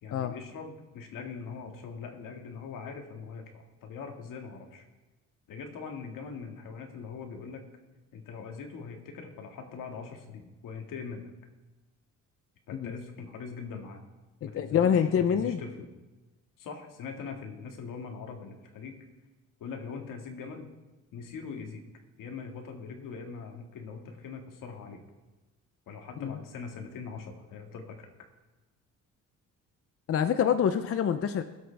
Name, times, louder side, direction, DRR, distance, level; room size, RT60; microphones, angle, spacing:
voice 1, 0.0-4.8 5.5-7.7 8.1-11.2 12.7-14.0 14.4-15.9 16.6-19.0 19.6-20.7 21.1-21.8 22.2-25.0 25.9-28.1, left 5 dB, 75° left, 3 dB, 2.1 m, -42 dB
voice 2, 14.4-15.6 26.2-26.4 30.1-31.4, left 8 dB, 45° left, 9 dB, 0.6 m, -26 dB
21.0 x 8.0 x 3.5 m, 1.1 s
cardioid pair, 120°, 32 cm